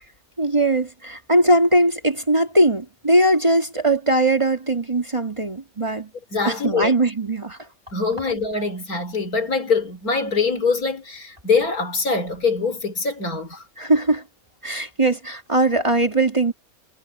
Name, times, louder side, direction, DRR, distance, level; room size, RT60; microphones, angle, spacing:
voice 1, 0.4-6.1 6.4-7.6 13.8-14.2 14.6-16.5, right 1 dB, 20° right, 2.1 m, -20 dB
voice 2, 6.3-6.9 7.9-13.6, left 4 dB, 90° left, 3.6 m, -23 dB
omnidirectional pair, 1.5 m